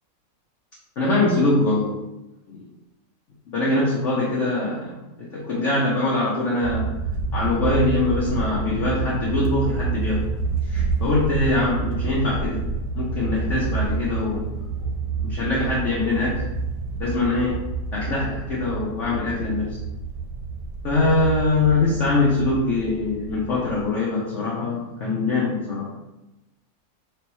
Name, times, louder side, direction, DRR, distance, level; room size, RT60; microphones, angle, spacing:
voice 1, 1.0-2.0 2.5-2.7 3.5-6.9 7.3-10.3 10.7-12.6 12.9-14.9 15.2-16.4 17.0-17.6 17.9-19.8 20.8-25.9, left 2 dB, 60° left, -5 dB, 0.8 m, -23 dB
sound 1, 6.6-23.8, right 4 dB, 70° right, 1.1 m, -28 dB
4.3 x 3.2 x 3.0 m, 0.98 s
omnidirectional pair, 2.0 m